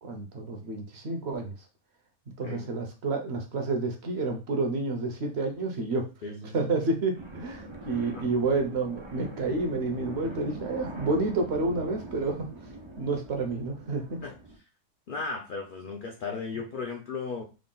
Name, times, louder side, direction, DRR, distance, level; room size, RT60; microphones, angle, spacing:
voice 1, 0.0-1.5 2.4-6.1 6.5-12.5 13.0-14.2, right 3 dB, 55° right, 3 dB, 0.9 m, -29 dB
voice 2, 6.2-6.7 8.1-8.3 14.2-14.3 15.1-17.4, left 4 dB, 70° left, 2 dB, 0.4 m, -36 dB
sound 1, 7.1-14.6, right 2 dB, 40° right, 0.4 m, -42 dB
3.6 x 2.3 x 3.7 m, 0.32 s
omnidirectional pair, 1.5 m